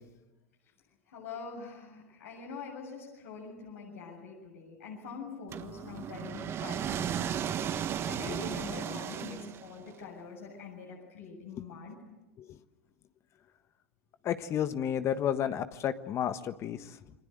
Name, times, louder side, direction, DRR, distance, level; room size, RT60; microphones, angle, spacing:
voice 1, 1.1-7.8 8.1-12.0, left 4 dB, 75° left, -2 dB, 7.5 m, -44 dB
sound 1, 5.5-9.9, right 9 dB, 35° right, 1.5 m, -35 dB
voice 2, 14.2-17.0, left 9 dB, 40° left, 10 dB, 1.5 m, -32 dB
29.5 x 23.0 x 8.1 m, 1.0 s
hypercardioid pair, 95°, 7 cm